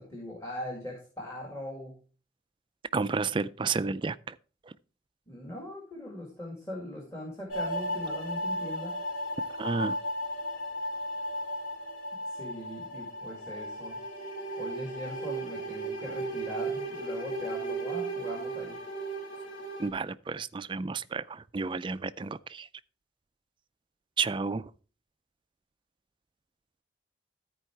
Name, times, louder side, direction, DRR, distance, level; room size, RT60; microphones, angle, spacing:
voice 1, 0.0-1.9 5.3-8.9 12.3-14.0 14.5-18.8, left 1 dB, 15° left, 2.1 m, -40 dB
voice 2, 2.9-4.4 4.6-4.7 9.6-10.0 19.8-22.7 24.2-24.7, right 4 dB, 25° right, 0.3 m, -31 dB
sound 1, 7.5-19.9, right 1 dB, 75° left, 2.7 m, -35 dB
13.5 x 4.7 x 4.5 m
head